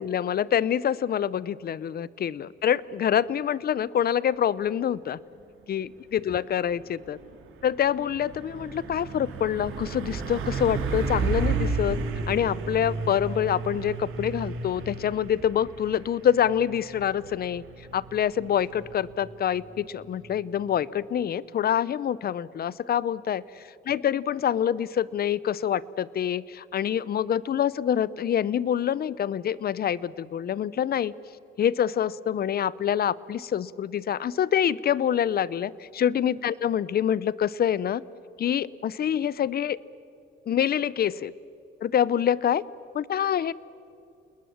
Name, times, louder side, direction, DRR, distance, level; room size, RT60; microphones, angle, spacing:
voice 1, 0.0-5.2 5.7-7.2 7.6-12.0 12.3-17.6 17.9-31.1 31.6-38.0 38.4-39.8 40.5-41.3 41.8-42.6 42.9-43.5, left 9 dB, 50° left, 20 dB, 0.7 m, -26 dB
Truck, 6.5-20.8, right 4 dB, 85° right, 3.1 m, -33 dB
29.0 x 20.0 x 7.2 m, 2.7 s
cardioid pair, 90°, 20 cm